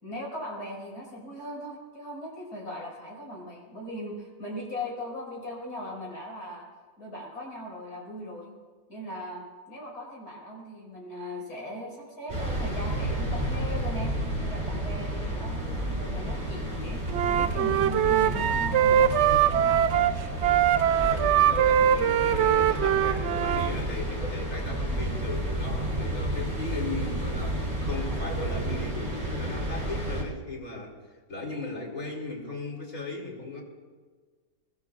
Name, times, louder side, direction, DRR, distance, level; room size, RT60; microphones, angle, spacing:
voice 1, 0.0-6.7 7.0-8.5 8.9-14.1 14.4-17.0 17.3-20.0, equal, 65° left, -3 dB, 6.1 m, -39 dB
sound 1, 12.3-30.2, right 1 dB, 30° right, 3.6 m, -31 dB
sound 2, 12.8-20.7, left 1 dB, 25° left, 5.5 m, -39 dB
Wind instrument woodwind instrument, 17.1-23.7, right 10 dB, 85° right, 0.6 m, -22 dB
voice 2, 21.0-31.0 31.3-33.6, left 2 dB, 50° left, 0 dB, 3.3 m, -37 dB
24.5 x 20.5 x 2.5 m, 1.5 s
omnidirectional pair, 1.8 m